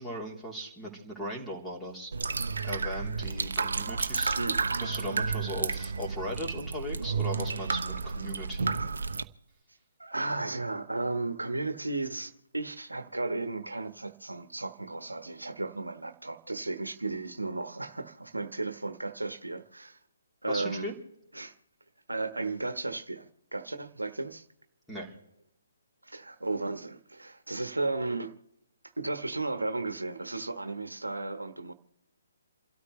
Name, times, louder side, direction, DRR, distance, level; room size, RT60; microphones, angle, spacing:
voice 1, 0.0-2.1 2.6-4.4 4.8-8.7 20.5-20.9 24.9-25.1, equal, 5° left, 3.3 m, -38 dB
sound 1, 2.1-9.2, right 4 dB, 65° right, 0.8 m, -31 dB
voice 2, 10.0-20.0 20.4-20.9 21.3-21.5 22.1-24.4 26.0-28.3 29.0-31.7, right 2 dB, 85° right, 1.3 m, -34 dB
28.5 x 13.0 x 3.2 m
figure-of-eight pair, 135°, 0 cm